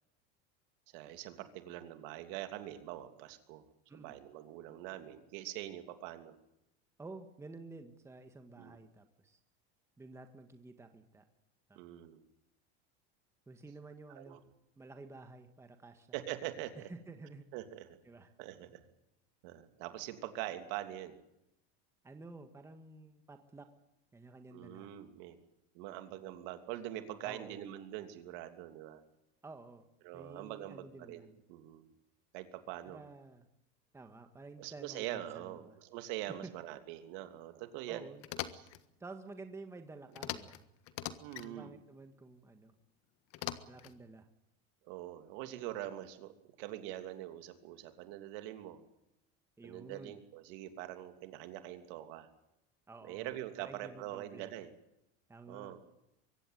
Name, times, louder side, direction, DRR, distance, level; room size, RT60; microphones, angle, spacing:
voice 1, 0.9-3.6 3.9-6.3 8.6-8.8 11.7-12.2 14.2-14.4 16.1-16.9 17.5-18.0 18.4-18.8 19.4-21.2 24.5-25.4 25.7-29.0 30.0-31.9 32.3-33.0 34.6-38.1 41.2-41.7 44.8-46.3 46.6-48.8 49.6-52.3 53.0-54.7 55.5-55.8, right 13 dB, 65° right, 7 dB, 3.0 m, -44 dB
voice 2, 7.0-9.4 10.0-11.2 11.7-11.8 13.5-14.4 14.8-16.1 16.8-17.4 18.0-18.3 22.0-23.7 24.1-24.9 27.2-27.7 29.4-29.8 30.1-31.4 32.8-33.4 33.9-35.8 36.3-36.5 37.9-38.2 39.0-40.7 41.4-42.7 43.6-44.3 49.6-50.2 52.9-54.5 55.3-55.7, right 3 dB, 10° right, 6 dB, 1.7 m, -51 dB
sound 1, 38.2-38.8 40.2-40.6 40.9-41.5 43.3-44.0, left 13 dB, 50° left, 1.6 m, -41 dB
23.5 x 16.0 x 9.4 m, 0.84 s
supercardioid pair, 140°, 30 cm